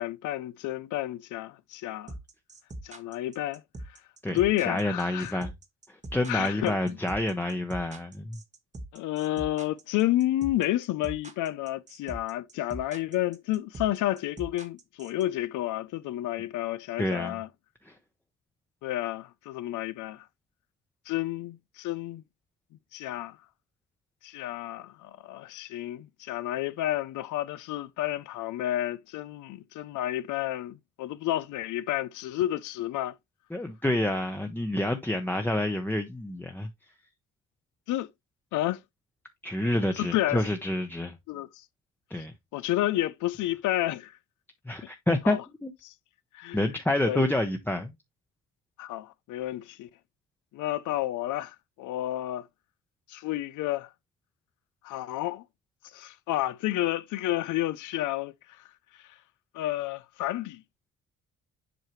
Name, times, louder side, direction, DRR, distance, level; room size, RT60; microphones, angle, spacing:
voice 1, 0.0-2.1 2.8-3.6 4.3-5.4 6.3-7.0 8.9-17.5 18.8-20.3 21.1-22.2 22.9-23.4 24.2-33.2 37.9-38.1 38.5-38.8 39.9-40.4 41.3-41.6 42.1-42.2 42.5-44.2 45.2-45.4 45.8-45.9 46.3-46.7 47.0-47.3 48.8-49.9 50.5-52.5 53.1-53.9 54.8-55.4 55.9-58.6 59.5-60.6, left 14 dB, 80° left, 0.5 m, -30 dB
sound 1, 2.1-15.2, right 1 dB, 25° right, 1.3 m, -42 dB
voice 2, 4.7-5.5 5.9-8.4 17.0-17.4 17.8-17.9 33.5-36.7 39.4-41.2 42.1-42.3 44.7-45.7 46.5-47.9, left 1 dB, 5° left, 0.8 m, -28 dB
7.7 x 4.7 x 3.1 m
cardioid pair, 90°, 30 cm